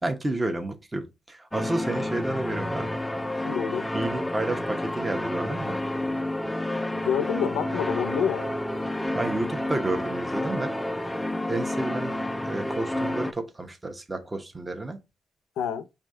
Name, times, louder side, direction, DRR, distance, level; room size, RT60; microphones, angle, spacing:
voice 1, 0.0-3.0 3.9-5.8 9.1-11.0 11.5-12.1 12.4-15.0, right 2 dB, 20° right, 1.0 m, -31 dB
sound 1, 1.5-13.3, left 1 dB, 10° left, 0.4 m, -30 dB
voice 2, 3.4-3.9 6.9-8.5 15.6-15.9, left 8 dB, 90° left, 0.5 m, -28 dB
4.9 x 2.8 x 3.6 m
cardioid pair, 85°, 0 cm